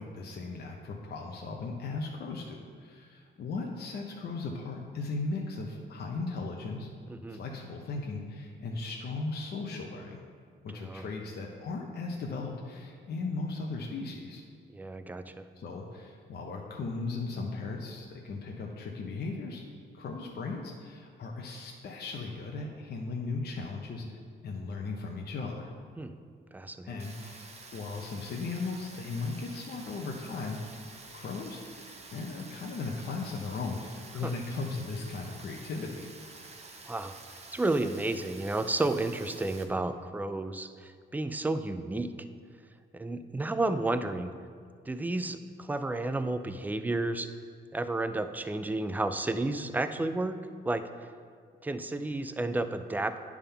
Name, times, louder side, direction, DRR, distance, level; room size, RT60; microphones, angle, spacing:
voice 1, 0.0-6.9 7.3-10.2 10.6-14.4 15.6-19.6 19.9-24.1 24.4-25.7 26.9-27.4 27.7-30.6 31.1-36.1, left 3 dB, 55° left, 0 dB, 0.8 m, -37 dB
voice 2, 7.1-7.4 10.7-11.1 14.7-15.5 26.0-26.1 26.5-27.0 34.2-34.3 36.9-37.1 37.5-42.3 42.9-44.3 44.9-47.3 47.7-50.4 50.6-50.9 51.6-53.2, right 2 dB, 10° right, 10 dB, 0.4 m, -32 dB
Rain, 27.0-39.6, right 3 dB, 35° right, 0.9 m, -49 dB
9.7 x 3.6 x 5.6 m, 2.1 s
cardioid pair, 90°, 20 cm